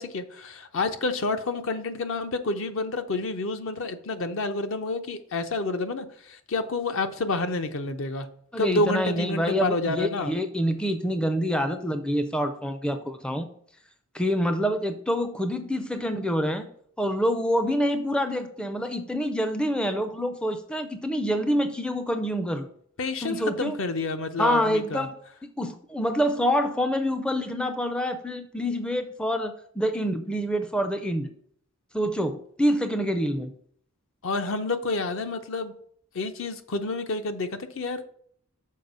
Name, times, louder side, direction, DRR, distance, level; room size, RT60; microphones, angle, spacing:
voice 1, 0.0-8.3 8.6-10.4 23.0-25.1 34.2-35.7 36.1-38.1, left 3 dB, 60° left, 8 dB, 0.6 m, -29 dB
voice 2, 8.5-13.5 14.1-16.7 17.0-22.7 23.2-23.8 24.4-25.2 25.4-31.3 31.9-33.5, equal, 5° left, 8 dB, 0.4 m, -26 dB
6.5 x 4.3 x 5.4 m, 0.64 s
head